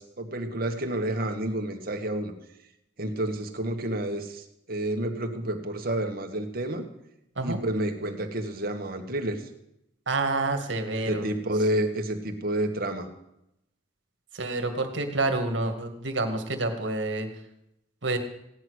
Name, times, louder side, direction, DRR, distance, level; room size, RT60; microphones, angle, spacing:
voice 1, 0.0-2.3 3.0-4.4 4.7-6.8 7.4-9.4 10.9-13.1, right 1 dB, 55° right, 4 dB, 1.9 m, -29 dB
voice 2, 10.1-11.3 14.3-17.3 18.0-18.2, right 2 dB, 75° right, 6 dB, 2.1 m, -28 dB
16.5 x 10.5 x 6.4 m, 0.82 s
head